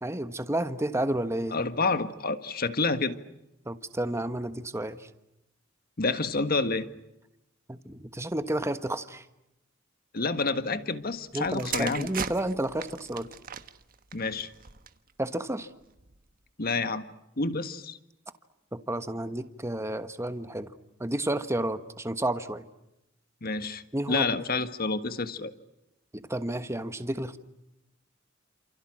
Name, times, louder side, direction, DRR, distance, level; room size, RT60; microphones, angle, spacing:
voice 1, 0.0-1.6 3.6-5.0 7.7-9.2 11.3-13.3 15.2-15.7 18.7-20.7 21.0-22.6 23.9-24.3 26.1-27.4, right 1 dB, 15° right, 10 dB, 1.3 m, -31 dB
voice 2, 1.5-3.2 6.0-6.9 10.1-12.1 14.1-14.5 16.6-17.1 17.4-18.0 23.4-23.8 24.1-25.5, left 3 dB, 50° left, 11 dB, 1.5 m, -28 dB
sound 1, 11.3-15.1 15.9-16.2, right 7 dB, 45° right, 1.3 m, -38 dB
29.0 x 28.0 x 6.3 m, 0.90 s
head